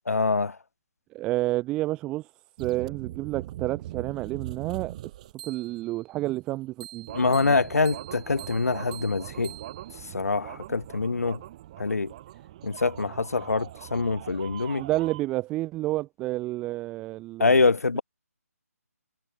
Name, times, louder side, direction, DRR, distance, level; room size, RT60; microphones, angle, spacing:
voice 1, 0.1-0.6 7.1-9.5 10.1-11.4 11.8-12.1 12.6-14.8 17.4-18.0, left 3 dB, 65° left, 0.8 m, -25 dB
voice 2, 1.1-2.3 2.6-4.9 5.4-7.1 7.4-7.6 14.8-17.6, right 17 dB, 10° right, 0.3 m, -30 dB
sound 1, 2.6-5.9 6.8-15.2, right 14 dB, 25° right, 6.9 m, -41 dB
figure-of-eight pair, 145°, 9 cm